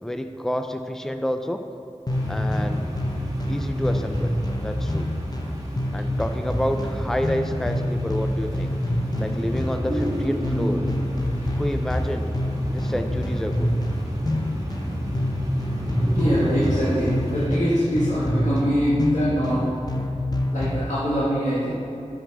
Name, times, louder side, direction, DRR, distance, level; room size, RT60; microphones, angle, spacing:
voice 1, 0.0-1.6 2.3-2.9 3.5-5.1 5.9-8.8 9.2-10.9 11.5-12.3 12.7-13.7, equal, 5° left, 7 dB, 0.4 m, -29 dB
sound 1, 2.1-20.9, left 1 dB, 30° left, 0.8 m, -27 dB
sound 2, 2.1-17.5, equal, 30° right, 1.4 m, -31 dB
voice 2, 16.1-19.6 20.5-21.7, equal, 90° left, -10 dB, 1.7 m, -23 dB
6.8 x 6.1 x 5.4 m, 2.9 s
wide cardioid pair, 60°, 12 cm